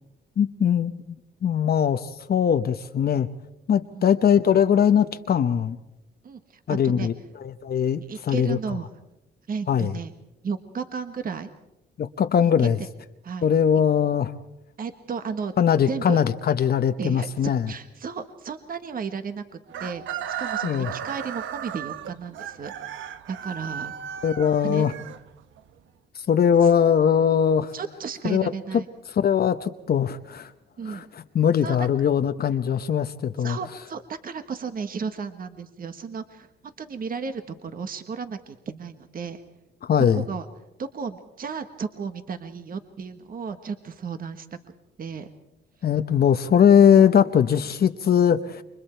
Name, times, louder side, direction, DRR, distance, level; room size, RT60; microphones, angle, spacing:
voice 1, 0.4-1.2 1.4-3.3 3.7-5.8 6.7-7.1 7.4-8.6 9.7-9.9 12.0-12.8 13.4-14.3 15.6-17.7 20.6-20.9 24.2-24.9 26.1-27.7 28.2-28.5 29.1-30.5 30.9-33.6 39.8-40.2 45.8-48.6, left 8 dB, 50° left, 9 dB, 0.9 m, -21 dB
voice 2, 6.2-7.1 8.1-8.9 9.5-10.1 10.4-11.5 12.6-12.9 13.2-13.5 14.8-15.5 15.9-16.2 17.0-19.4 19.8-20.0 20.4-22.7 23.0-23.9 24.6-24.8 26.6-26.7 27.7-28.8 30.8-31.1 31.6-31.9 33.4-39.4 40.1-40.4 40.8-44.5 45.0-45.3, right 5 dB, 45° right, 8 dB, 1.4 m, -34 dB
Chicken rooster, 19.7-25.7, right 9 dB, 80° right, 1.0 m, -35 dB
29.0 x 24.0 x 4.5 m, 0.89 s
cardioid pair, 90°, 20 cm